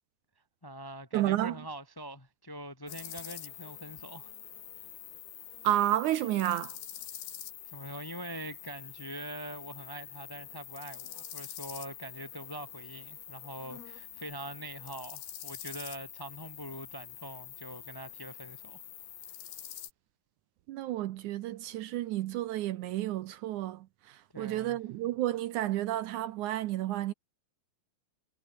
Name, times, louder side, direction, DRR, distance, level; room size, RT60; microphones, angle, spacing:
voice 1, 0.6-4.3 7.6-18.8 24.3-24.8, right 1 dB, 25° left, 0.5 m, -43 dB
voice 2, 1.1-1.5 5.6-6.7 20.7-23.9 24.4-27.1, right 14 dB, 80° right, 1.8 m, -31 dB
sound 1, 2.9-19.9, left 11 dB, 85° left, 4.1 m, -46 dB
omnidirectional pair, 4.3 m